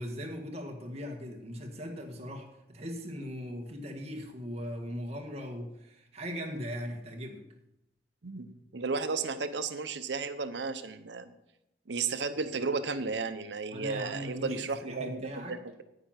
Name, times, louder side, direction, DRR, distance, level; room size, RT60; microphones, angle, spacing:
voice 1, 0.0-7.4 11.2-11.3 13.7-15.6, equal, 35° right, 2 dB, 1.7 m, -39 dB
voice 2, 8.2-11.3 11.9-15.8, right 4 dB, 80° right, 11 dB, 0.8 m, -34 dB
10.0 x 9.0 x 5.8 m, 0.89 s
head